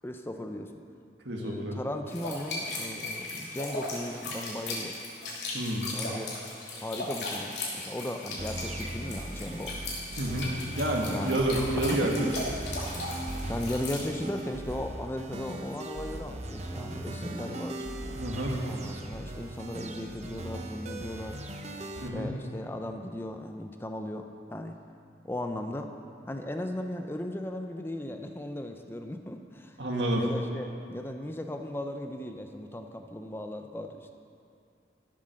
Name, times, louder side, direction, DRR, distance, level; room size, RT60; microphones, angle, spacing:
voice 1, 0.0-0.7 1.4-5.0 5.9-6.3 6.8-9.7 11.1-11.4 12.0-12.3 13.5-17.8 18.6-21.4 22.1-24.7 25.2-25.9 26.3-29.8 30.2-34.1, left 1 dB, 15° left, 5 dB, 0.5 m, -37 dB
voice 2, 1.3-1.8 5.5-5.9 10.2-12.1 18.2-18.6 22.0-22.3 29.8-30.2, right 1 dB, 85° right, 0 dB, 1.8 m, -29 dB
sound 1, 2.1-14.1, left 2 dB, 75° left, 2.9 m, -37 dB
sound 2, 8.4-22.1, right 1 dB, 40° right, 0.8 m, -38 dB
14.0 x 7.7 x 6.4 m, 2.4 s
head